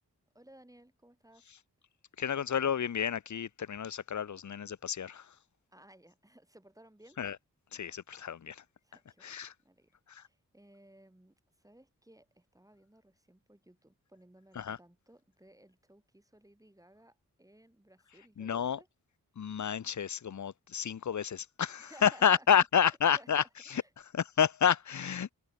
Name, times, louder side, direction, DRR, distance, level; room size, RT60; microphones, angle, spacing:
voice 1, 0.3-1.5 5.7-7.2 8.8-9.4 9.6-18.9 21.8-23.9, right 1 dB, 10° right, 5.2 m, -59 dB
voice 2, 2.2-5.3 7.2-7.4 7.7-8.6 9.2-9.5 10.1-10.2 14.6-14.8 18.4-18.8 19.4-23.4 23.7-23.8 24.1-25.3, left 8 dB, 55° left, 0.8 m, -30 dB
wide cardioid pair, 80°, 35 cm